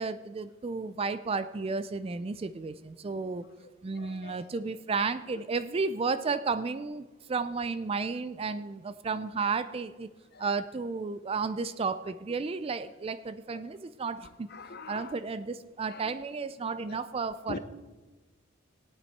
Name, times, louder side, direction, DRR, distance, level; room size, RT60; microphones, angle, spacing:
voice 1, 0.0-3.4 3.8-10.1 10.4-14.5 14.9-17.6, right 4 dB, 30° right, 0.3 m, -33 dB
voice 2, 4.0-4.4 10.3-10.5 13.5-13.6 14.2-15.2 15.9-16.1 16.9-17.0 17.5-17.6, left 3 dB, 50° left, 0.8 m, -43 dB
17.0 x 9.1 x 4.5 m
head